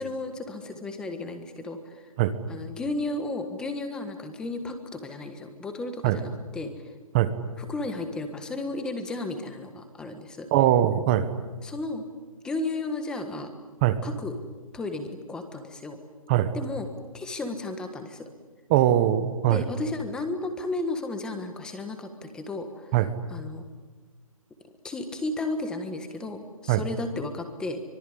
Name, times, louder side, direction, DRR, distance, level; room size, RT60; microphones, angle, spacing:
voice 1, 0.0-2.1 2.5-6.7 7.6-10.5 11.6-12.0 12.4-13.5 14.0-14.4 14.7-16.0 16.5-16.9 17.1-18.3 19.5-22.9 23.3-23.6 24.8-27.8, left 2 dB, 5° left, 8 dB, 1.4 m, -33 dB
voice 2, 10.5-11.3 13.8-14.0 16.3-16.5 18.7-19.6 22.9-23.1 26.7-26.8, right 12 dB, 15° right, 12 dB, 1.0 m, -21 dB
25.0 x 23.0 x 10.0 m, 1.4 s
hypercardioid pair, 170°, 18 cm